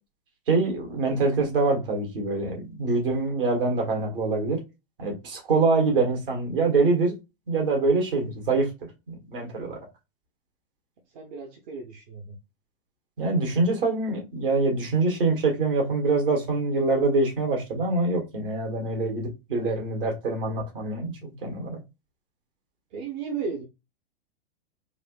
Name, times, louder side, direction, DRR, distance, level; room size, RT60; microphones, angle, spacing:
voice 1, 0.5-4.6 5.0-7.1 7.5-8.7 9.1-9.9 13.2-21.8, right 3 dB, 65° right, 1.7 m, -25 dB
voice 2, 11.1-12.4 22.9-23.6, right 5 dB, 45° right, 0.8 m, -34 dB
4.1 x 2.6 x 2.3 m
figure-of-eight pair, 95°, 30 cm